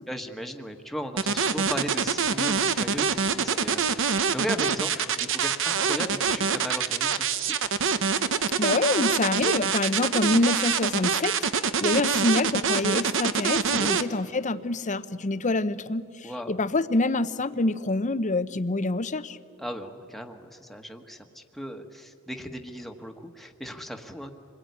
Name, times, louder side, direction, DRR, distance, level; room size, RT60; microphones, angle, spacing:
voice 1, 0.1-7.7 10.1-10.2 13.6-13.9 16.2-16.5 19.6-24.3, equal, ahead, 4 dB, 1.4 m, -37 dB
sound 1, 1.2-14.0, right 6 dB, 60° right, 1.0 m, -25 dB
voice 2, 8.6-11.4 11.8-19.4, left 2 dB, 35° left, 13 dB, 0.7 m, -26 dB
27.0 x 21.0 x 9.5 m, 2.7 s
head